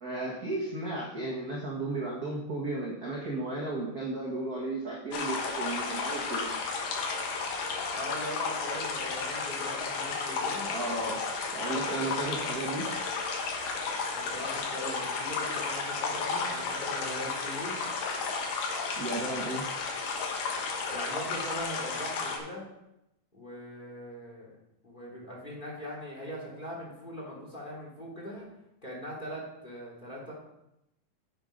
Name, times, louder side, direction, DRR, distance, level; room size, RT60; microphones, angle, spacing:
voice 1, 0.0-6.5 10.7-11.2 11.5-12.9 19.0-19.6, right 2 dB, 40° right, -4 dB, 1.4 m, -34 dB
sound 1, 5.1-22.4, left 4 dB, 85° left, 3.0 m, -33 dB
voice 2, 7.9-10.7 14.1-17.9 20.9-22.7 23.3-24.5 24.8-28.5 28.8-30.3, equal, 15° left, -3 dB, 2.6 m, -40 dB
9.2 x 7.4 x 5.2 m, 0.86 s
omnidirectional pair, 3.8 m